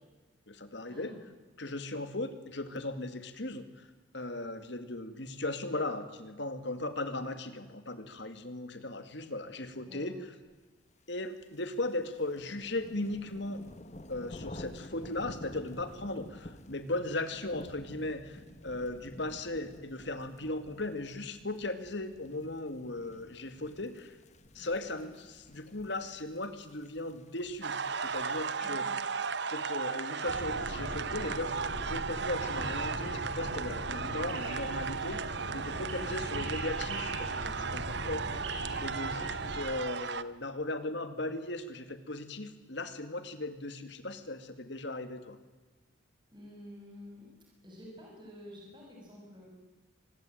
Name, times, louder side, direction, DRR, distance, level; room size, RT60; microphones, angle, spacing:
voice 1, 0.5-1.1 1.6-3.9 4.1-10.3 11.1-13.6 14.1-24.2 24.5-28.9 29.5-38.2 38.8-45.4, left 2 dB, 60° left, 10 dB, 2.2 m, -37 dB
voice 2, 9.9-10.2 24.9-25.0 28.6-28.9 36.0-36.3 46.3-47.3 47.6-49.5, left 1 dB, 25° right, -2 dB, 6.9 m, -50 dB
sound 1, 11.1-28.6, left 1 dB, 35° left, 1.3 m, -51 dB
sound 2, 27.6-40.2, right 5 dB, 60° right, 0.9 m, -35 dB
sound 3, 30.3-39.6, right 1 dB, 75° right, 7.7 m, -40 dB
25.0 x 20.5 x 9.2 m, 1.3 s
head